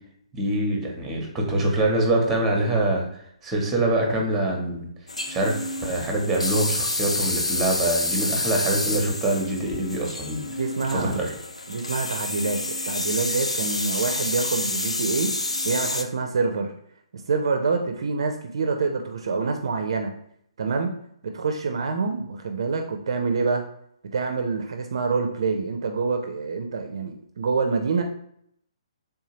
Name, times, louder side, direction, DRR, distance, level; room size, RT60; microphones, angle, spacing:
voice 1, 0.3-3.0 3.4-4.9 5.3-10.4 10.9-11.3, right 1 dB, 10° right, 1 dB, 0.8 m, -24 dB
sound 1, 5.1-16.0, left 2 dB, 85° left, 0.4 m, -29 dB
voice 2, 10.6-11.3 11.7-15.3 15.6-16.7 17.1-20.1 20.6-20.9 21.2-23.6 24.0-28.0, right 4 dB, 55° right, 5 dB, 0.4 m, -26 dB
3.4 x 2.7 x 3.0 m, 0.70 s
figure-of-eight pair, 130°, 3 cm